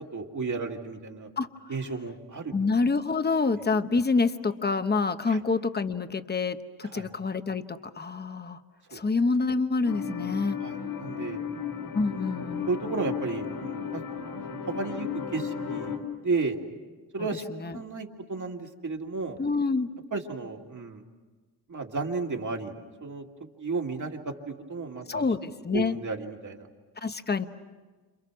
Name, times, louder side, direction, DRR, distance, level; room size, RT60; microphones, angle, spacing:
voice 1, 0.0-1.3 1.7-2.6 5.3-5.4 6.9-7.1 8.9-9.0 10.6-11.4 12.1-14.0 14.7-16.6 17.1-19.4 20.1-21.0 21.7-22.7 23.0-23.3 23.6-25.3 25.7-26.7, right 4 dB, 45° right, 2 dB, 2.4 m, -33 dB
voice 2, 2.5-8.6 8.9-10.6 11.9-12.7 17.6-17.8 19.4-19.9 25.1-26.0 27.0-27.5, left 4 dB, 25° left, 9 dB, 1.0 m, -27 dB
sound 1, 9.8-16.0, left 6 dB, 80° left, 4.3 m, -34 dB
29.5 x 27.5 x 6.2 m, 1.4 s
wide cardioid pair, 120°, 41 cm